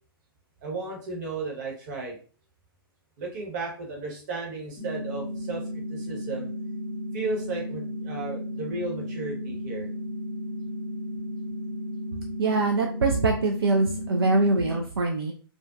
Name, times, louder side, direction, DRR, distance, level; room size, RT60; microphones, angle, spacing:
voice 1, 0.6-2.2 3.2-5.6 5.9-6.5 7.1-9.9, right 3 dB, 45° right, -1 dB, 1.0 m, -34 dB
sound 1, 4.8-14.8, equal, 10° right, 0.6 m, -34 dB
voice 2, 12.4-15.3, right 3 dB, 75° right, 2 dB, 0.4 m, -23 dB
2.5 x 2.1 x 2.3 m, 0.40 s
figure-of-eight pair, 115°, 13 cm